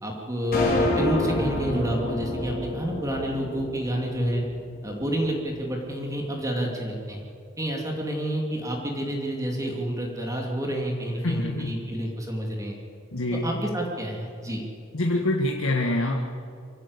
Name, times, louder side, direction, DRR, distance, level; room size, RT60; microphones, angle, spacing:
voice 1, 0.0-4.4 4.8-7.2 7.6-12.8 13.4-14.6, equal, 15° right, -1 dB, 2.9 m, -29 dB
sound 1, 0.5-4.9, left 1 dB, 45° left, 4.1 m, -28 dB
voice 2, 11.2-11.7 13.1-13.5 14.9-16.3, left 1 dB, 75° left, 1 dB, 1.8 m, -25 dB
25.0 x 15.5 x 8.2 m, 2.4 s
head